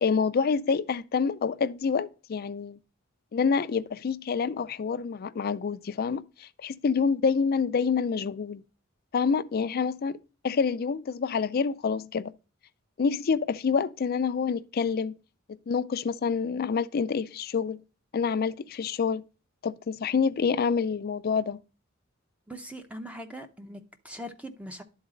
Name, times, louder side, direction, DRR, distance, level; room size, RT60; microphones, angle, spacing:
voice 1, 0.0-2.8 3.3-8.6 9.1-10.2 10.4-12.3 13.0-15.2 15.7-17.8 18.1-19.2 19.6-21.6, left 5 dB, 50° left, 0.4 m, -27 dB
voice 2, 22.5-24.8, equal, 5° right, 0.7 m, -41 dB
11.0 x 4.0 x 3.8 m
head